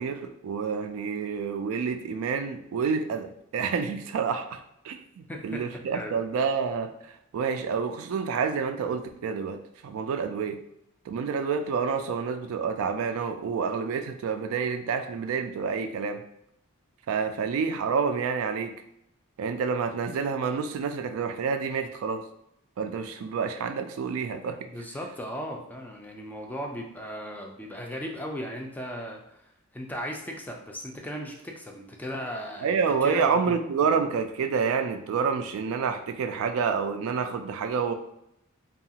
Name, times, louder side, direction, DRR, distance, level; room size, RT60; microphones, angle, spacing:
voice 1, 0.0-5.0 5.4-10.6 11.1-16.2 17.1-18.7 19.4-22.2 22.8-24.6 32.6-37.9, right 5 dB, 70° right, 7 dB, 0.3 m, -28 dB
voice 2, 5.3-5.7 5.9-6.2 24.6-29.4 29.7-32.8 33.0-33.5 33.8-33.9, equal, 10° left, 1 dB, 0.3 m, -37 dB
2.8 x 2.3 x 2.8 m, 0.78 s
head